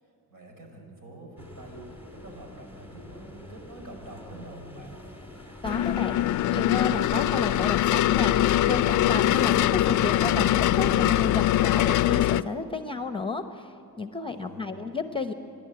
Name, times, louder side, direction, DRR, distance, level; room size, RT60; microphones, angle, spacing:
voice 1, 0.3-1.9 2.1-5.0 9.2-9.7 14.2-15.0, right 2 dB, 65° right, 2 dB, 6.0 m, -46 dB
sound 1, 1.4-11.3, left 1 dB, 5° right, 3.2 m, -44 dB
sound 2, 5.6-12.4, left 13 dB, 55° left, 0.4 m, -23 dB
voice 2, 5.6-15.3, left 3 dB, 15° left, 8 dB, 0.8 m, -32 dB
27.0 x 12.0 x 8.8 m, 2.5 s
cardioid pair, 125°, 37 cm